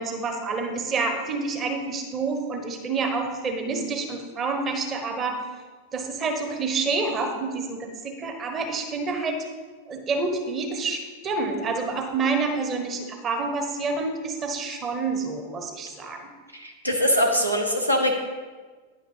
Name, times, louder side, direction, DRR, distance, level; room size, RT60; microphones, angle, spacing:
voice 1, 0.0-5.4 5.9-9.5 9.9-16.3, right 4 dB, 25° right, 6 dB, 1.1 m, -28 dB
voice 2, 16.5-18.1, equal, 90° right, 1 dB, 1.0 m, -22 dB
9.8 x 5.7 x 4.9 m, 1.4 s
figure-of-eight pair, 90°, 0 cm